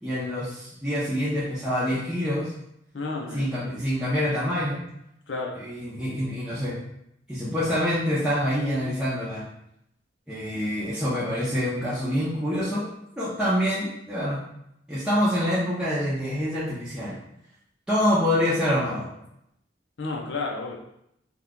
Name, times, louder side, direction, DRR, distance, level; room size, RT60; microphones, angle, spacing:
voice 1, 0.0-2.5 3.3-4.8 5.6-6.7 7.3-9.5 10.3-12.8 13.2-14.4 14.9-17.2 17.9-19.1, equal, 5° right, -11 dB, 0.6 m, -26 dB
voice 2, 2.9-3.5 5.3-5.6 20.0-20.8, left 3 dB, 80° left, 1 dB, 0.6 m, -31 dB
2.8 x 2.4 x 3.5 m, 0.78 s
head